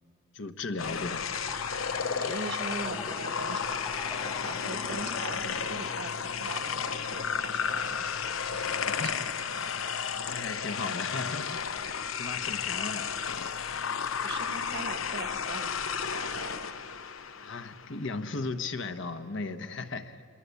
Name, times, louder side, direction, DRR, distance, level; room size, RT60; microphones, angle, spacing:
voice 1, 0.3-1.3 8.7-9.1 10.3-11.6 12.1-13.5 17.4-20.3, left 3 dB, 70° left, 8 dB, 1.2 m, -36 dB
sound 1, 0.8-18.1, left 6 dB, 85° left, 0.8 m, -33 dB
sound 2, 1.0-6.7, left 3 dB, 15° left, 0.6 m, -44 dB
voice 2, 2.2-3.9 4.4-8.1 8.5-9.2 14.2-16.8, right 3 dB, 60° right, 9 dB, 1.3 m, -41 dB
27.0 x 23.0 x 8.3 m, 2.7 s
head